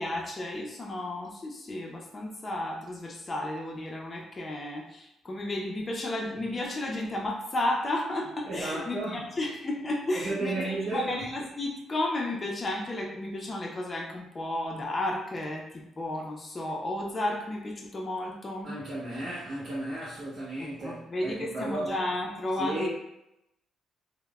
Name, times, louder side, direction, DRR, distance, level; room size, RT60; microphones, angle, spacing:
voice 1, 0.0-18.8 20.6-22.9, left 1 dB, 30° left, -1 dB, 0.5 m, -33 dB
voice 2, 8.4-9.2 10.1-11.1 18.6-22.0 22.6-22.9, right 2 dB, 45° right, -8 dB, 0.8 m, -34 dB
3.2 x 2.0 x 2.3 m, 0.87 s
cardioid pair, 90°, 0 cm